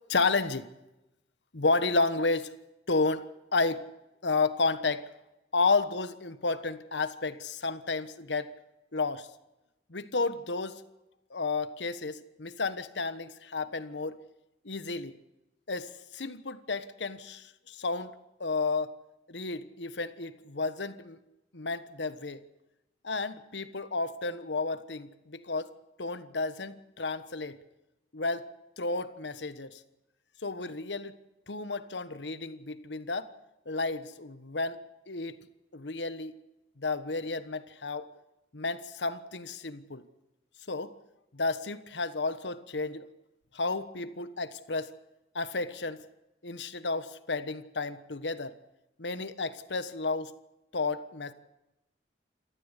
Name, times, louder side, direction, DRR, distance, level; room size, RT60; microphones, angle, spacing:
voice 1, 0.1-0.7 1.5-2.5 2.9-3.3 3.5-3.8 4.2-5.1 5.5-8.5 8.9-9.3 9.9-10.8 11.3-14.1 14.6-15.2 15.7-18.1 18.4-18.9 19.3-21.2 21.5-22.4 23.0-25.7 26.0-27.6 28.1-28.5 28.8-29.8 30.4-31.1 31.5-33.3 33.7-34.8 35.1-35.4 35.7-36.3 36.8-38.1 38.5-40.0 40.7-40.9 41.3-43.1 43.5-44.9 45.3-46.0 46.4-48.5 49.0-50.3 50.7-51.3, left 3 dB, 90° left, 13 dB, 1.3 m, -32 dB
28.0 x 13.5 x 8.3 m, 0.95 s
head